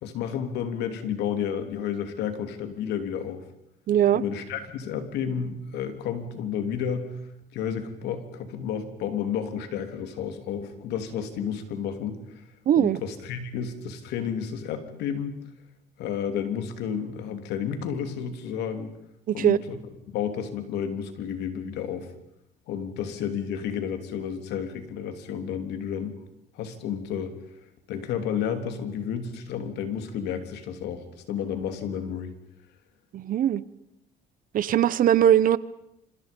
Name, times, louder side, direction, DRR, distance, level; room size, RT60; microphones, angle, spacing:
voice 1, 0.0-3.4 4.1-7.1 7.5-12.2 12.8-15.3 16.0-18.9 19.3-19.8 20.1-22.1 22.7-26.2 26.5-27.3 27.9-32.3, left 8 dB, 85° left, 8 dB, 3.1 m, -31 dB
voice 2, 3.9-4.2 12.7-13.0 19.3-19.6 33.1-33.6 34.5-35.6, right 11 dB, 55° right, 18 dB, 1.0 m, -20 dB
27.0 x 26.0 x 5.4 m, 0.80 s
cardioid pair, 110°, 17 cm